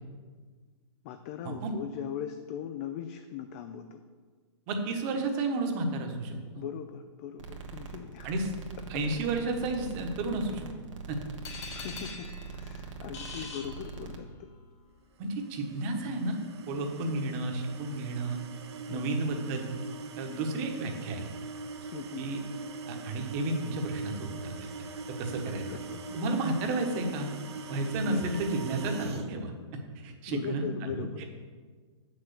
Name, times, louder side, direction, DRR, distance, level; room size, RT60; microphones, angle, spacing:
voice 1, 1.0-4.0 6.6-8.4 11.7-14.3 17.0-17.3 18.9-19.1 21.9-22.3 25.7-26.2 28.0-28.4 30.3-31.2, left 9 dB, 30° left, 8 dB, 0.4 m, -40 dB
voice 2, 4.7-6.6 8.2-8.5 8.9-10.7 11.1-11.2 13.3-13.5 15.2-16.4 16.7-18.4 18.9-19.7 20.2-21.2 22.2-22.4 22.9-24.7 25.1-25.6 26.1-27.3 27.7-29.5 29.9-31.2, right 2 dB, 30° right, 4 dB, 1.2 m, -32 dB
sound 1, 7.4-14.2, right 5 dB, 85° right, 1.5 m, -43 dB
sound 2, 11.4-14.5, left 4 dB, 60° left, 2.2 m, -44 dB
sound 3, 15.4-29.3, right 4 dB, 60° right, 0.9 m, -42 dB
7.3 x 6.2 x 6.8 m, 1.5 s
hypercardioid pair, 155°, 16 cm